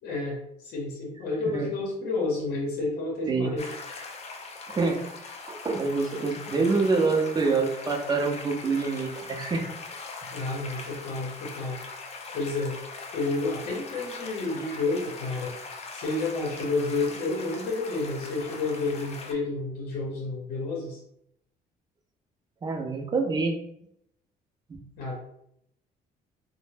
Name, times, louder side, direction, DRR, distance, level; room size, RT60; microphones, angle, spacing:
voice 1, 0.0-3.7 10.3-11.8 12.3-12.7 13.1-15.5 15.9-21.0 25.0-25.1, left 3 dB, 65° left, -2 dB, 0.7 m, -30 dB
sound 1, 3.6-19.3, left 4 dB, 40° left, 0.4 m, -41 dB
voice 2, 4.7-5.1 5.5-9.7 22.6-23.6 24.7-24.8, right 4 dB, 25° right, 4 dB, 0.5 m, -26 dB
2.1 x 2.0 x 3.2 m, 0.75 s
cardioid pair, 110°, 17 cm